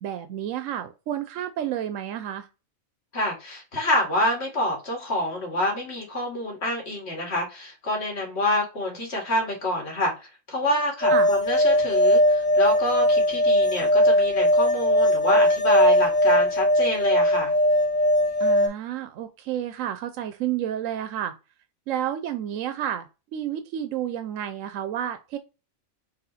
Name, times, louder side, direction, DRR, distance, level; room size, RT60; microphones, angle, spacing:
voice 1, 0.0-2.5 11.1-11.3 18.4-21.3 21.9-25.4, right 10 dB, 75° right, 0.9 m, -30 dB
voice 2, 3.1-17.5, left 1 dB, 50° left, 2.1 m, -27 dB
sound 1, 11.0-18.7, left 1 dB, 5° left, 1.4 m, -20 dB
4.2 x 2.9 x 4.1 m
omnidirectional pair, 1.4 m